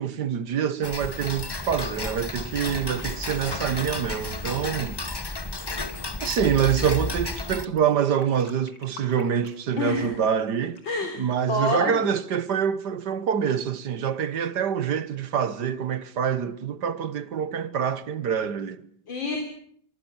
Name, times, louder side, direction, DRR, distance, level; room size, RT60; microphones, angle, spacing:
voice 1, 0.0-5.0 6.2-10.8 11.2-18.9, right 8 dB, 65° right, 1.7 m, -26 dB
Tick-tock, 0.8-7.7, left 2 dB, 20° left, 0.7 m, -32 dB
Fill (with liquid), 1.2-3.1 3.7-4.2 4.6-7.4 7.8-10.2 10.7-11.1, left 3 dB, 50° left, 5.1 m, -49 dB
voice 2, 9.8-10.1 10.9-11.2 11.5-12.1 19.1-19.4, left 2 dB, 85° left, 4.6 m, -27 dB
25.0 x 24.5 x 7.2 m
omnidirectional pair, 2.0 m